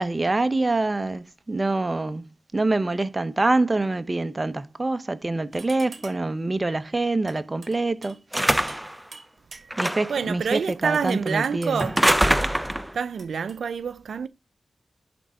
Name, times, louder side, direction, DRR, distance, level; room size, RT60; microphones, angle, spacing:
voice 1, 0.0-2.2 2.5-8.7 9.8-11.8, right 2 dB, 30° right, 1.0 m, -25 dB
sound 1, 5.5-6.4 7.3-8.9 9.1-10.0 10.9-12.3 13.2-13.6, right 4 dB, 65° right, 1.9 m, -47 dB
sound 2, 8.3-8.9 9.7-10.2 11.8-12.9, equal, 5° right, 0.7 m, -23 dB
voice 2, 10.1-12.0 12.9-14.3, right 6 dB, 85° right, 0.5 m, -27 dB
11.0 x 3.7 x 5.5 m
cardioid pair, 55°, 0 cm